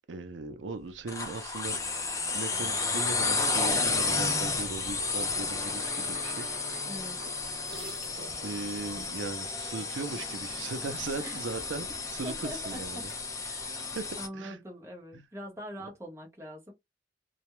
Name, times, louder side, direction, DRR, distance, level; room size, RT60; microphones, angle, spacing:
voice 1, 0.1-1.8 2.3-6.5 8.4-13.1 13.9-14.1 14.3-14.6 15.1-15.2, right 3 dB, 85° right, 0.5 m, -38 dB
sound 1, 1.1-14.3, left 3 dB, 15° left, 0.4 m, -32 dB
sound 2, 5.6-9.2 9.7-9.9 10.3-10.6 10.8-11.6 11.9-13.2, right 2 dB, 55° right, 0.8 m, -50 dB
voice 2, 6.9-7.2 11.2-11.4 12.2-12.8 13.4-13.9 14.2-16.7, equal, 15° right, 0.7 m, -43 dB
2.3 x 2.0 x 2.9 m
head